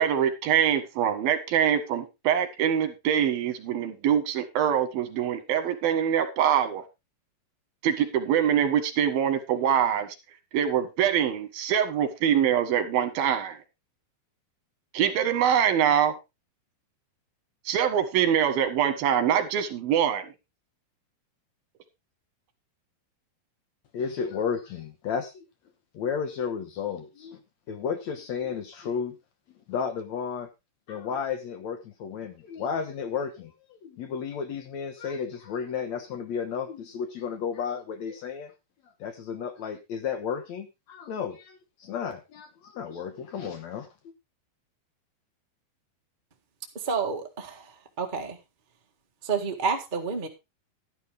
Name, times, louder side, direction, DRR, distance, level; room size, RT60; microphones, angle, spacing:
voice 1, 0.0-6.8 7.8-10.1 10.5-13.6 14.9-16.1 17.7-20.3, right 9 dB, 85° right, 8 dB, 3.5 m, -24 dB
voice 2, 23.9-25.4 25.9-27.4 27.7-29.2 29.7-30.5 30.9-38.5 39.0-44.1, left 6 dB, 65° left, 8 dB, 2.0 m, -33 dB
voice 3, 46.7-48.4 49.2-50.3, right 5 dB, 40° right, 3 dB, 0.6 m, -30 dB
11.5 x 11.0 x 3.5 m, 0.25 s
omnidirectional pair, 4.2 m